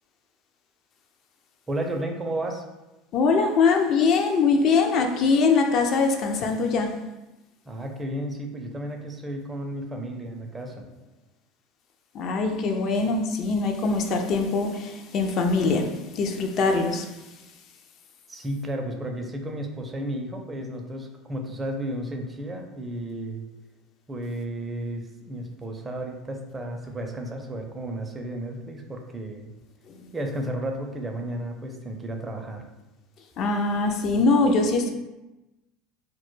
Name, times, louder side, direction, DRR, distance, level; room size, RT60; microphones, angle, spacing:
voice 1, 1.7-2.6 7.7-10.9 18.3-23.5 24.1-29.5 30.1-32.6, right 1 dB, 20° right, 3 dB, 0.4 m, -33 dB
voice 2, 3.1-6.9 12.1-17.1 29.9-30.1 33.4-34.9, left 4 dB, 50° left, 4 dB, 0.3 m, -22 dB
2.1 x 2.0 x 3.1 m, 1.0 s
hypercardioid pair, 85°, 0 cm